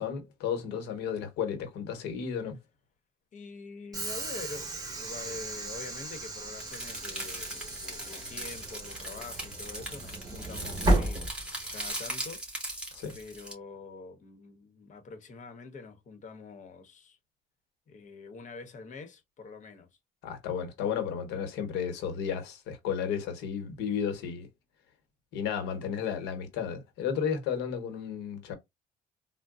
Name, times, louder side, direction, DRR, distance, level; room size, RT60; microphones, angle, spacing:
voice 1, 0.0-2.6 12.9-13.2 20.2-24.5 25.3-28.5, left 7 dB, 90° left, 1.0 m, -33 dB
voice 2, 3.3-12.4 13.1-17.2 17.9-19.9, left 4 dB, 45° left, 1.0 m, -45 dB
Train / Sliding door, 3.9-11.9, right 2 dB, 20° right, 1.3 m, -34 dB
sound 1, 6.6-13.5, right 1 dB, 5° right, 1.8 m, -39 dB
3.8 x 2.2 x 2.3 m
cardioid pair, 110°, 17 cm